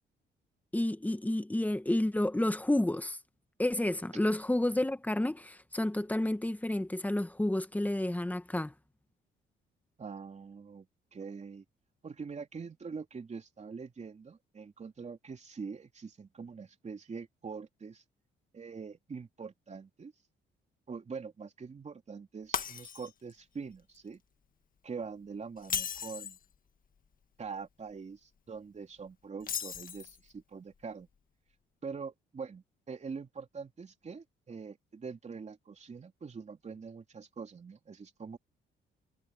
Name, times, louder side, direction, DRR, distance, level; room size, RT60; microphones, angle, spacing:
voice 1, 0.7-3.2 3.6-8.7, left 1 dB, 10° left, 1.3 m, -30 dB
voice 2, 10.0-11.6 12.0-18.0 18.5-20.1 20.9-24.2 24.8-26.4 27.4-31.1 31.8-38.4, right 5 dB, 35° right, 3.0 m, -44 dB
Shatter, 22.5-23.3 23.7-24.0 25.6-26.4 29.4-30.3, left 7 dB, 45° left, 1.7 m, -36 dB
cardioid pair, 90°, 20 cm